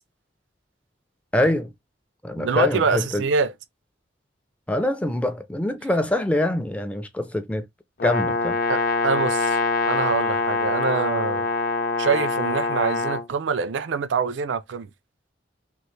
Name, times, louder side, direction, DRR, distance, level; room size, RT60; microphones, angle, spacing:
voice 1, 1.3-1.7 2.2-3.2 4.7-7.6 8.0-8.6, left 1 dB, 5° left, 0.4 m, -24 dB
voice 2, 2.4-3.5 8.7-9.6 9.9-11.5 12.0-14.9, right 5 dB, 75° right, 0.4 m, -25 dB
Brass instrument, 8.0-13.3, left 3 dB, 50° left, 0.6 m, -24 dB
3.1 x 2.5 x 3.2 m
head